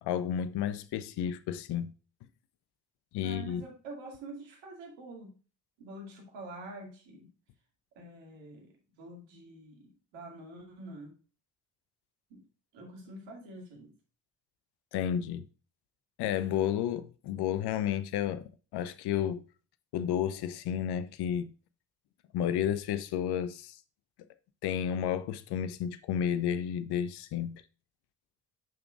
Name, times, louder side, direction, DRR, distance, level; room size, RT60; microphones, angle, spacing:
voice 1, 0.0-1.9 3.1-3.6 14.9-15.4 16.2-18.4 18.7-19.4 19.9-21.5 22.3-23.8 24.6-27.6, left 9 dB, 55° left, 0.7 m, -31 dB
voice 2, 3.2-5.4 5.8-7.3 8.0-11.1 12.3-12.4 12.7-13.9, right 2 dB, 70° right, 2.2 m, -46 dB
7.4 x 5.9 x 2.4 m
hypercardioid pair, 45°, 47 cm